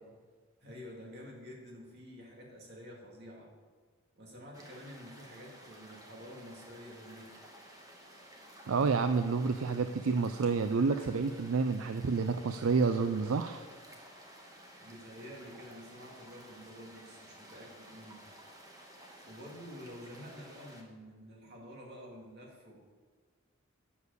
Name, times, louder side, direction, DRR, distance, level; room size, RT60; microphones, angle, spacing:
voice 1, 0.6-3.5 4.1-7.3 14.8-18.2 19.2-22.9, equal, 55° right, -1 dB, 2.4 m, -49 dB
sound 1, 4.5-20.8, right 1 dB, 15° right, 1.3 m, -54 dB
voice 2, 8.7-13.6, right 4 dB, 80° right, 8 dB, 0.4 m, -29 dB
8.3 x 7.1 x 6.6 m, 1.5 s
head